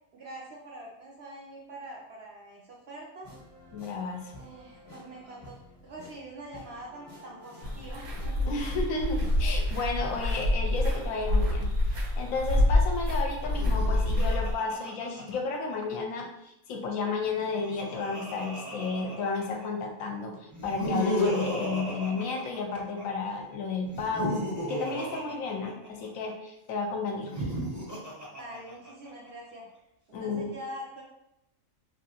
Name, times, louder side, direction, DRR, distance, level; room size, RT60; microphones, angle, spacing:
voice 1, 0.1-3.3 4.3-5.6 5.8-8.5 28.3-31.0, right 1 dB, 65° right, -3 dB, 0.7 m, -44 dB
sound 1, 3.2-9.6, left 1 dB, 35° left, 0.9 m, -51 dB
voice 2, 3.7-4.2 8.5-24.4 24.7-27.3 30.1-30.5, left 4 dB, 75° left, 3 dB, 0.9 m, -32 dB
sound 2, 7.6-14.5, left 1 dB, 85° right, 1.3 m, -27 dB
Laughter, 13.4-15.9 17.3-19.6 20.5-23.0 23.9-26.3 27.1-29.1, equal, 20° right, 0.5 m, -34 dB
2.9 x 2.5 x 2.7 m, 0.84 s
omnidirectional pair, 1.5 m